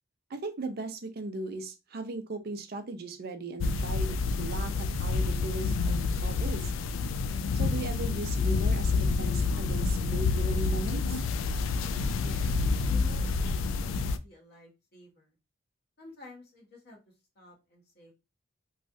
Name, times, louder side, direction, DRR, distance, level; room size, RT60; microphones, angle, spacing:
voice 1, 0.3-6.7 7.5-11.2, right 3 dB, 50° right, 7 dB, 0.5 m, -38 dB
sound 1, 3.6-14.2, left 4 dB, 75° left, 0.3 m, -28 dB
voice 2, 12.2-15.3 16.0-17.0 17.3-18.1, left 1 dB, 50° left, -1 dB, 1.1 m, -51 dB
3.1 x 2.4 x 2.6 m, 0.26 s
head